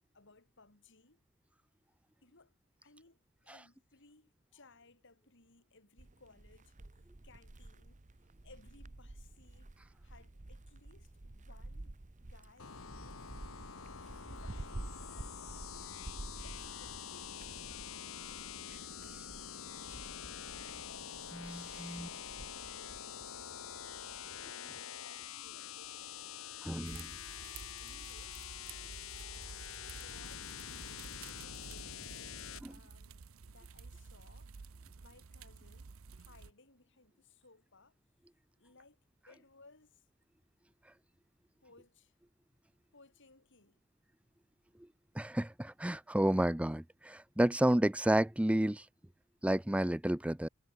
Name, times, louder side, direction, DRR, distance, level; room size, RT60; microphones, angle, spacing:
voice 1, 0.1-1.2 2.2-8.0 8.4-9.8 10.0-13.3 14.2-16.0 16.4-21.2 21.8-23.3 24.0-27.1 27.5-28.4 29.8-34.5 35.0-38.0 38.6-39.0 39.3-40.1 41.6-42.1 42.9-43.8, left 3 dB, 60° left, 4.8 m, -63 dB
sound 1, 6.0-24.5, right 2 dB, 35° right, 1.0 m, -51 dB
sound 2, 12.6-32.6, left 8 dB, 80° left, 1.5 m, -46 dB
voice 2, 21.4-22.1 26.6-27.1 32.6-32.7 45.2-48.9 49.4-50.5, right 1 dB, 5° right, 0.5 m, -31 dB
sound 3, 26.8-36.5, right 5 dB, 80° right, 0.7 m, -52 dB
head